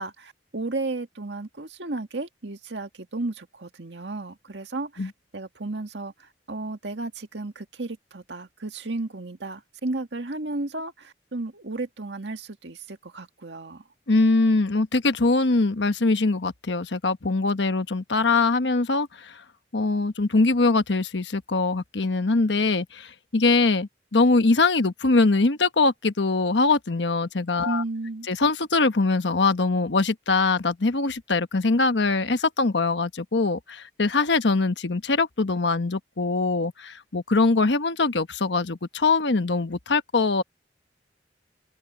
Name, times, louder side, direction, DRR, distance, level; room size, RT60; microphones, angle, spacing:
voice 1, 0.0-13.8 27.6-28.3, right 2 dB, 80° right, 1.9 m, -33 dB
voice 2, 14.1-19.4 19.7-27.8 28.3-40.4, left 3 dB, 85° left, 1.1 m, -22 dB
open air
head